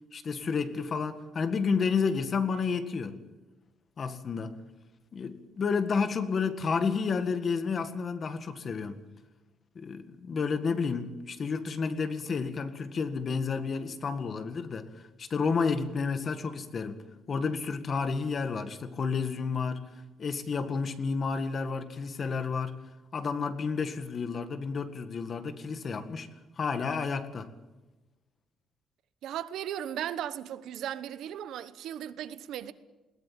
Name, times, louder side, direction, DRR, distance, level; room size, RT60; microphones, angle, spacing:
voice 1, 0.1-3.2 4.0-4.6 5.1-9.0 9.8-17.0 17.3-19.8 20.2-22.8 23.1-26.3 26.6-27.5, left 5 dB, 35° left, 1.8 m, -31 dB
voice 2, 29.2-32.7, right 10 dB, 75° right, 1.2 m, -36 dB
21.0 x 18.5 x 8.8 m
cardioid pair, 155°, 0 cm